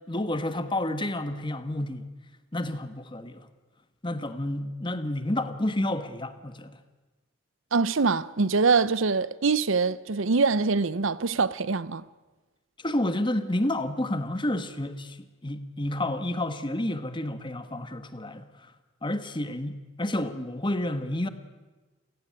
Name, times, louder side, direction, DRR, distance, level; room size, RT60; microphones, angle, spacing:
voice 1, 0.1-2.1 2.5-3.5 4.0-6.8 12.8-18.7 19.0-21.3, left 1 dB, 25° left, 1.5 m, -30 dB
voice 2, 7.7-12.0, right 4 dB, 70° right, 0.7 m, -24 dB
28.0 x 16.5 x 9.9 m
head